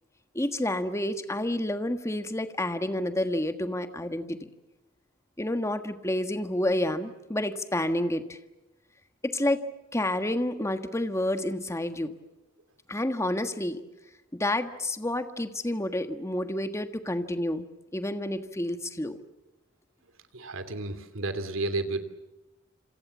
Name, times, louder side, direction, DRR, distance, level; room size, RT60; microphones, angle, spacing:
voice 1, 0.3-4.4 5.4-8.4 9.2-9.6 9.9-12.2 12.9-13.8 14.3-17.7 17.9-19.2, left 1 dB, 15° left, 9 dB, 1.5 m, -29 dB
voice 2, 20.3-22.0, right 2 dB, 75° right, 11 dB, 2.8 m, -31 dB
27.5 x 26.5 x 7.3 m, 1.0 s
head